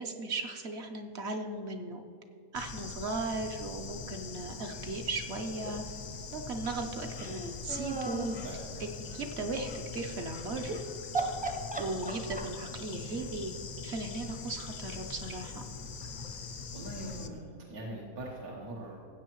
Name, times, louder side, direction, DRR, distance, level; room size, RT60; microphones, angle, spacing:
voice 1, 0.0-2.0 2.5-5.8 6.3-8.3 9.1-10.8 11.8-13.6 13.8-15.6, right 3 dB, 55° right, 4 dB, 0.8 m, -37 dB
Bird / Insect, 2.5-17.3, left 5 dB, 85° left, 0.4 m, -42 dB
sound 1, 7.1-8.5 10.6-10.8 11.1-12.7, right 2 dB, 10° right, 0.5 m, -35 dB
voice 2, 16.7-19.0, right 1 dB, 80° right, -4 dB, 1.7 m, -42 dB
15.5 x 8.1 x 3.0 m, 2.5 s
omnidirectional pair, 1.5 m